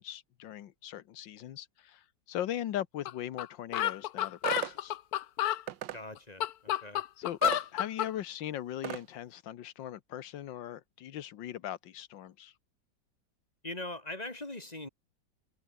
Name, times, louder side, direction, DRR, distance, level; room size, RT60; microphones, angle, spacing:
voice 1, 0.0-5.0 7.2-7.4 7.7-12.5, left 11 dB, 90° left, 1.7 m, -39 dB
sound 1, 3.1-3.2 3.4-3.5 3.7-5.6 6.2-8.1, left 12 dB, 65° left, 1.1 m, -30 dB
sound 2, 4.4-4.7 5.7-6.0 7.4-7.6 8.8-9.0, right 12 dB, 80° right, 1.6 m, -35 dB
voice 2, 5.9-7.0 13.6-14.9, left 2 dB, 20° left, 2.3 m, -41 dB
omnidirectional pair, 1.9 m